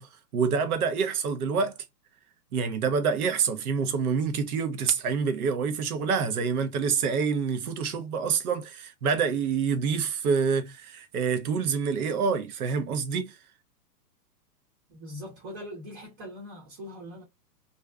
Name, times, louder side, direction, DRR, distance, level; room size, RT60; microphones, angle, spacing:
voice 1, 0.0-1.8 2.5-13.4, right 6 dB, 60° right, 0.8 m, -27 dB
voice 2, 14.9-17.2, equal, 35° right, 1.0 m, -41 dB
2.5 x 2.2 x 2.2 m
hypercardioid pair, 150°, 49 cm